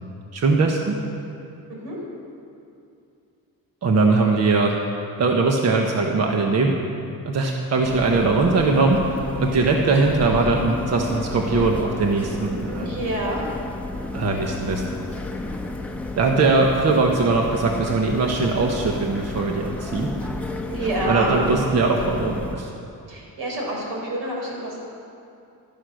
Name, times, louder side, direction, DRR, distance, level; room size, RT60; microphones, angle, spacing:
voice 1, 0.3-1.0 3.8-4.7 5.2-6.8 7.2-12.9 14.1-15.0 16.1-20.3 21.0-22.7, right 3 dB, 45° right, 1 dB, 1.3 m, -21 dB
sound 1, 7.8-22.6, left 2 dB, 5° left, 1.0 m, -32 dB
voice 2, 12.5-13.4 20.7-21.4 23.1-24.8, right 1 dB, 85° right, -2 dB, 4.8 m, -28 dB
15.0 x 12.5 x 6.5 m, 2.6 s
cardioid pair, 150°, 36 cm